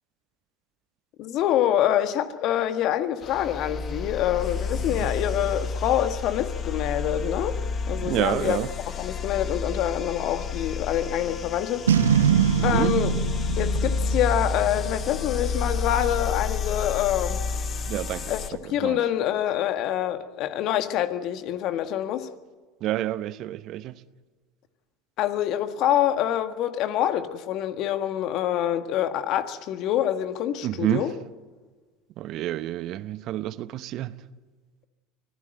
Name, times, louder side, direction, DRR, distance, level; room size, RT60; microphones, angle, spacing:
voice 1, 1.2-8.6 9.0-11.9 12.6-13.1 13.6-17.4 18.3-22.3 25.2-31.1, left 11 dB, 55° left, 1.6 m, -26 dB
sound 1, 3.2-18.5, left 5 dB, 35° left, 1.7 m, -30 dB
voice 2, 8.0-8.7 12.6-13.0 17.9-19.0 22.8-24.0 30.6-31.1 32.2-34.1, right 14 dB, 55° right, 0.9 m, -29 dB
Boom, 11.9-15.2, right 8 dB, 90° right, 0.9 m, -23 dB
24.5 x 16.0 x 7.9 m
hypercardioid pair, 80°, 0 cm